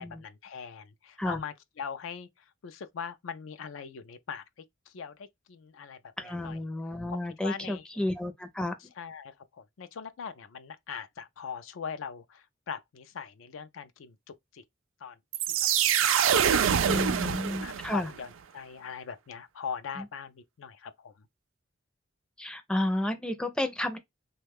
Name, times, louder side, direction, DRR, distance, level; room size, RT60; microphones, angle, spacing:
voice 1, 0.0-2.3 2.6-4.4 4.9-6.0 6.2-6.6 7.1-8.0 9.0-14.6 15.0-15.2 16.0-21.1, left 6 dB, 85° left, 0.4 m, -41 dB
voice 2, 6.2-8.7 16.9-18.1 20.0-20.1 22.4-24.0, left 1 dB, 5° left, 0.4 m, -31 dB
sound 1, 15.3-18.1, right 8 dB, 80° right, 0.4 m, -25 dB
3.0 x 2.2 x 3.4 m
head